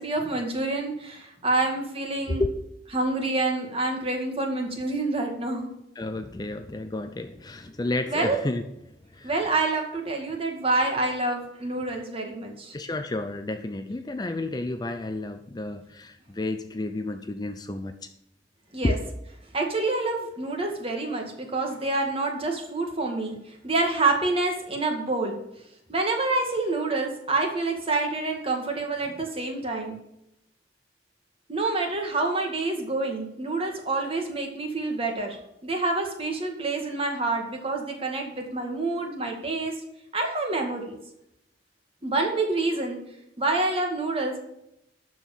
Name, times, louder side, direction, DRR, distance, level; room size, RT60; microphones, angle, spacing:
voice 1, 0.0-2.4 2.9-5.7 8.1-8.4 9.2-12.7 18.7-19.0 19.5-25.4 25.9-30.0 31.5-39.7 40.1-41.0 42.0-43.0 43.4-44.4, right 2 dB, 30° right, 2 dB, 2.0 m, -27 dB
voice 2, 6.0-9.3 12.7-18.1 18.8-19.0, left 2 dB, 20° left, 8 dB, 0.5 m, -31 dB
12.5 x 4.7 x 7.2 m, 0.81 s
head